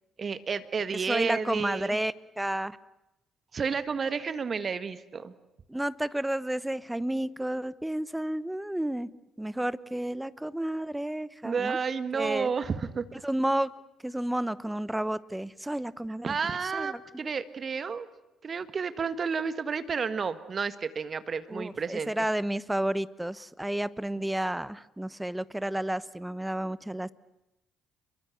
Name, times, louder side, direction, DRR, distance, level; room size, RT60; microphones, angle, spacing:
voice 1, 0.2-2.0 3.5-5.3 11.4-13.0 16.2-18.1 18.4-22.1, right 5 dB, 40° right, 12 dB, 1.7 m, -31 dB
voice 2, 1.0-2.8 5.7-9.1 9.4-11.8 12.1-12.5 13.2-13.7 14.0-16.4 16.7-17.0 21.5-27.1, right 1 dB, 10° right, 17 dB, 1.1 m, -31 dB
29.5 x 22.5 x 8.3 m, 0.95 s
hypercardioid pair, 45°, 0 cm